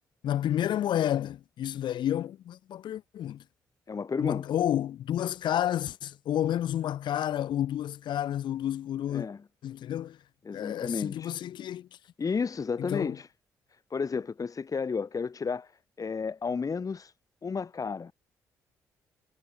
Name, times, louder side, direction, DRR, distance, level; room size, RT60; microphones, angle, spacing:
voice 1, 0.2-3.4 4.2-9.3 9.6-10.2 10.5-11.9 12.8-13.1, left 11 dB, 65° left, 1.6 m, -30 dB
voice 2, 3.9-4.4 9.1-9.4 10.4-11.3 12.2-13.3 13.9-15.7 16.0-17.1 17.4-18.1, left 5 dB, 40° left, 3.3 m, -32 dB
hypercardioid pair, 40°, 9 cm